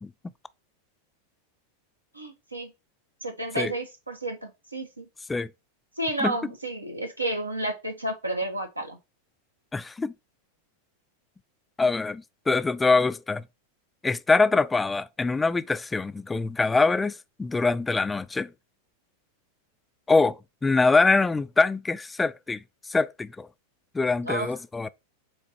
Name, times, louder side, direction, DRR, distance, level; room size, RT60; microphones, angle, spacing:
voice 1, 2.1-2.7 3.2-5.1 6.0-9.0 24.2-24.5, right 1 dB, 85° right, 1.3 m, -31 dB
voice 2, 9.7-10.1 11.8-13.4 14.0-18.5 20.1-22.6 22.9-23.5 23.9-24.9, left 3 dB, 10° left, 0.4 m, -24 dB
7.6 x 3.3 x 4.3 m
figure-of-eight pair, 90°, 0 cm